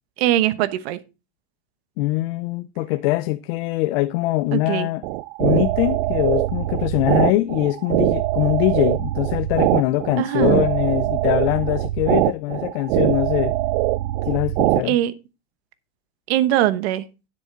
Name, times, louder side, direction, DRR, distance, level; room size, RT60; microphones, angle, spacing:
voice 1, 0.2-1.0 4.5-4.9 10.2-10.7 14.8-15.1 16.3-17.0, right 13 dB, 90° right, 1.1 m, -21 dB
voice 2, 2.0-5.0 5.4-13.5 14.3-15.0, left 17 dB, 70° left, 0.7 m, -22 dB
sound 1, 5.0-14.8, right 17 dB, 65° right, 0.5 m, -22 dB
9.8 x 8.0 x 3.8 m
cardioid pair, 175°, 31 cm